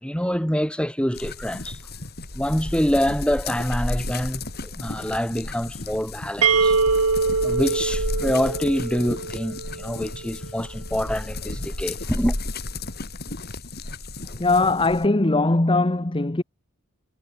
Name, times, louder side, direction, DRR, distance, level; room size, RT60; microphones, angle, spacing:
voice 1, 0.0-1.8 2.3-6.8 7.4-12.4, equal, 5° left, 5.4 m, -26 dB
sound 1, 1.1-15.1, left 2 dB, 45° left, 3.6 m, -33 dB
sound 2, 6.4-10.1, right 4 dB, 90° right, 1.9 m, -23 dB
voice 2, 14.3-16.4, left 2 dB, 25° left, 1.0 m, -20 dB
head